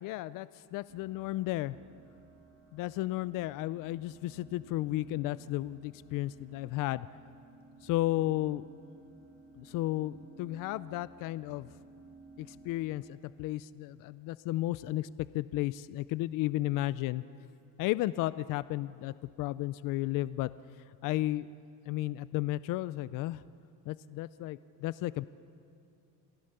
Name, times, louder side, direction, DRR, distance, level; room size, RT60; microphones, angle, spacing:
voice 1, 0.0-1.8 2.7-7.1 7.8-8.7 9.6-11.7 12.4-15.1 15.3-17.2 17.8-20.5 21.0-21.5 21.9-23.4 23.9-25.3, left 16 dB, 70° left, 16 dB, 0.5 m, -33 dB
sound 1, 0.9-13.2, right 3 dB, 55° right, 6.9 m, -56 dB
27.5 x 16.0 x 6.7 m, 2.5 s
cardioid pair, 140°, 34 cm